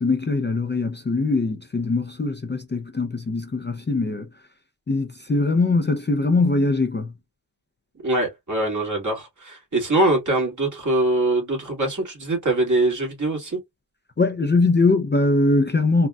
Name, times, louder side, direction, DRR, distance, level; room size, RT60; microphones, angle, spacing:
voice 1, 0.0-4.3 4.9-7.1 14.2-16.1, left 3 dB, 25° left, 0.5 m, -21 dB
voice 2, 8.0-13.6, right 2 dB, 40° right, 1.9 m, -23 dB
3.9 x 2.3 x 2.3 m
wide cardioid pair, 90°, 43 cm